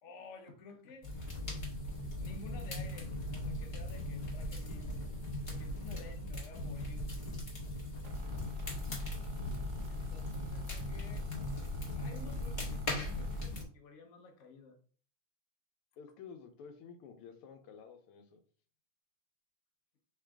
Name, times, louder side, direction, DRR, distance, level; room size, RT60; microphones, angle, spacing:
voice 1, 0.0-1.1 2.1-4.9 5.5-7.1 9.9-11.3 11.9-14.8, left 3 dB, 55° left, 4 dB, 0.8 m, -53 dB
sound 1, 1.0-13.6, left 1 dB, 25° left, 1.2 m, -39 dB
sound 2, 8.0-13.6, left 5 dB, 65° right, 1.3 m, -44 dB
voice 2, 16.0-18.4, left 6 dB, 85° left, 6 dB, 1.7 m, -51 dB
4.8 x 3.2 x 3.5 m, 0.43 s
omnidirectional pair, 2.4 m